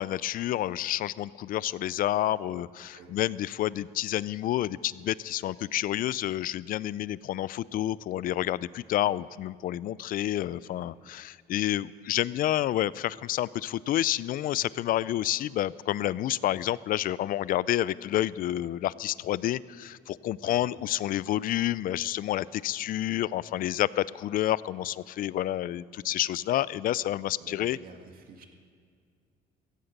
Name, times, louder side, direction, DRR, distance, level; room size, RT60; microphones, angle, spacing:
voice 1, 0.0-27.8, left 13 dB, 55° left, 20 dB, 0.4 m, -29 dB
voice 2, 27.4-28.5, right 5 dB, 60° right, 3 dB, 2.0 m, -49 dB
16.0 x 15.0 x 5.3 m, 2.1 s
cardioid pair, 110°, 17 cm